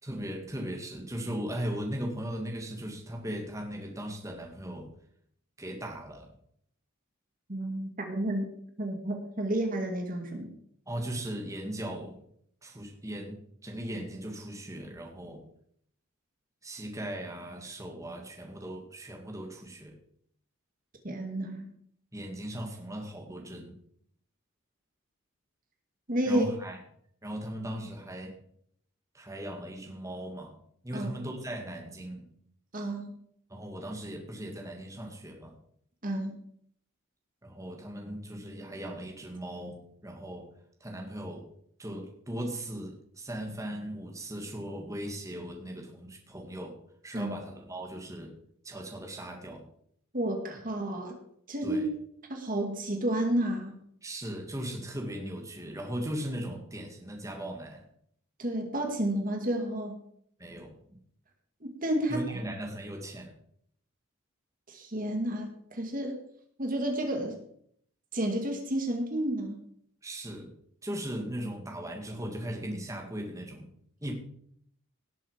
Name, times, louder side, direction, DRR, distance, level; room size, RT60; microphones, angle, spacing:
voice 1, 0.0-4.9 5.6-6.3 10.9-12.2 12.6-13.4 13.6-15.4 16.6-19.9 22.1-23.8 26.2-26.8 27.2-28.4 29.1-30.6 30.8-32.3 33.5-35.6 37.4-40.5 40.8-41.5 41.8-46.8 47.0-48.4 48.6-49.7 51.6-51.9 54.0-57.9 60.4-60.7 62.1-63.3 70.0-70.5 70.8-73.7 74.0-74.1, right 1 dB, 15° right, 1 dB, 2.3 m, -38 dB
voice 2, 7.5-8.5 8.8-10.5 21.0-21.7 26.1-26.4 30.9-31.1 32.7-33.1 36.0-36.4 47.1-47.4 50.1-51.2 51.5-51.8 52.3-53.7 58.4-60.0 61.6-62.2 64.7-66.2 66.6-67.3 68.1-69.6, right 1 dB, 40° right, 3 dB, 2.1 m, -31 dB
18.0 x 7.8 x 5.1 m, 0.66 s
head